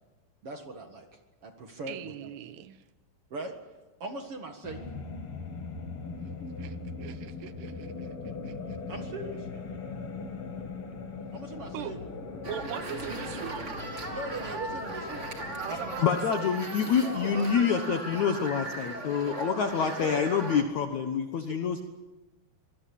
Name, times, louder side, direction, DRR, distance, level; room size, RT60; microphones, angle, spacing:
voice 1, 0.4-1.1 1.4-2.3 3.3-3.5 4.0-4.8 8.9-9.5 11.3-12.0 14.1-15.3 15.7-16.2 17.0-17.3 19.8-20.3, right 3 dB, 50° right, 5 dB, 1.8 m, -39 dB
voice 2, 1.9-2.8 6.2-9.2 11.7-12.0 12.5-13.8 15.6-16.6 17.3-17.8 21.5-21.6, right 11 dB, 80° right, 12 dB, 3.0 m, -41 dB
sound 1, 4.6-16.0, left 4 dB, 40° left, 2.4 m, -40 dB
sound 2, 12.4-20.6, right 2 dB, 25° right, 1.8 m, -38 dB
voice 3, 16.0-21.8, left 7 dB, 65° left, 6 dB, 1.8 m, -27 dB
25.0 x 20.0 x 8.6 m, 1.2 s
omnidirectional pair, 4.9 m